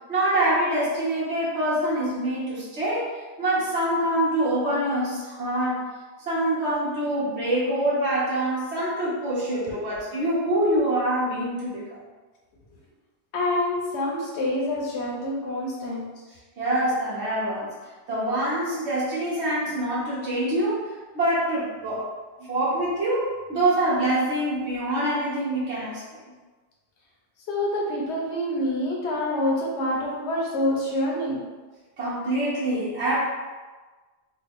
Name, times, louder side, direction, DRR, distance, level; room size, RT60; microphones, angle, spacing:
voice 1, 0.1-5.9 6.3-11.8 16.6-17.7 18.1-22.1 22.5-26.0 32.0-33.2, right 1 dB, 75° right, -7 dB, 1.4 m, -25 dB
voice 2, 13.3-16.1 27.5-31.4, left 1 dB, 75° left, -3 dB, 1.1 m, -27 dB
3.5 x 2.3 x 3.5 m, 1.3 s
omnidirectional pair, 1.2 m